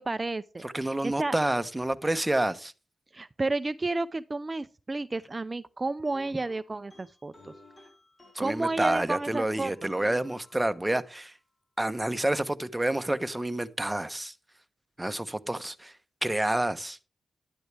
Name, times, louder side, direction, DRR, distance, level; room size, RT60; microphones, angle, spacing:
voice 1, 0.0-1.4 3.1-7.3 8.4-9.9, right 3 dB, 30° right, 0.5 m, -31 dB
voice 2, 0.6-2.7 8.3-11.3 11.8-14.3 15.0-16.0 16.2-17.0, right 1 dB, 10° right, 1.1 m, -28 dB
sound 1, 6.0-11.1, equal, 35° left, 4.4 m, -53 dB
12.0 x 11.0 x 3.4 m
cardioid pair, 60°, 0 cm